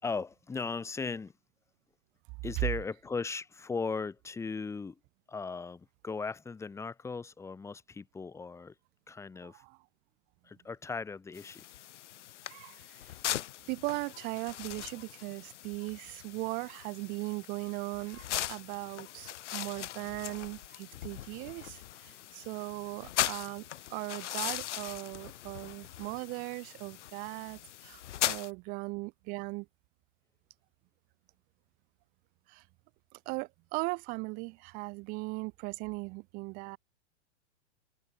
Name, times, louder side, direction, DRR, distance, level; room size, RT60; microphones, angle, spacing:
voice 1, 0.0-1.3 2.4-5.0 5.3-8.7 9.1-9.6 10.4-11.7, left 4 dB, 10° left, 3.1 m, -37 dB
voice 2, 9.4-9.8 12.5-12.8 13.7-23.6 23.9-29.7 32.5-32.6 33.3-36.8, right 28 dB, 25° right, 0.9 m, -38 dB
sound 1, 11.3-28.5, left 13 dB, 85° left, 0.8 m, -39 dB
hypercardioid pair, 155°, 35 cm